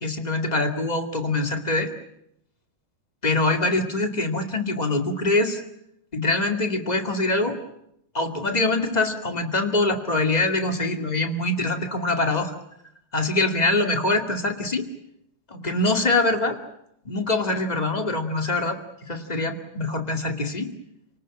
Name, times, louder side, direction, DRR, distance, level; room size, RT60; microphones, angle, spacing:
voice 1, 0.0-1.9 3.2-5.6 6.1-7.6 8.1-12.5 13.1-14.9 15.5-16.6 17.0-20.7, left 2 dB, 15° left, 5 dB, 1.7 m, -24 dB
29.0 x 19.0 x 8.9 m, 0.79 s
omnidirectional pair, 3.7 m